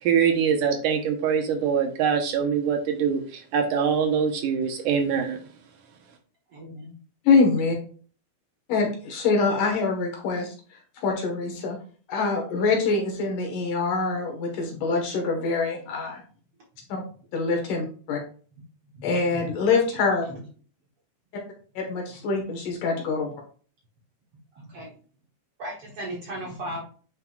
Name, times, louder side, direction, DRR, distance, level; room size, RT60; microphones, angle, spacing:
voice 1, 0.0-5.4, right 7 dB, 75° right, 3 dB, 2.5 m, -23 dB
voice 2, 6.5-6.9 18.9-19.5 20.3-20.4 24.6-24.9 25.6-26.8, equal, 55° right, -2 dB, 1.7 m, -36 dB
voice 3, 7.2-7.8 8.7-10.5 11.0-11.8 12.1-16.2 16.9-17.0 17.3-18.2 19.0-20.3 21.8-23.3, left 4 dB, 70° left, 2 dB, 3.0 m, -24 dB
9.3 x 5.4 x 2.4 m, 0.42 s
omnidirectional pair, 4.0 m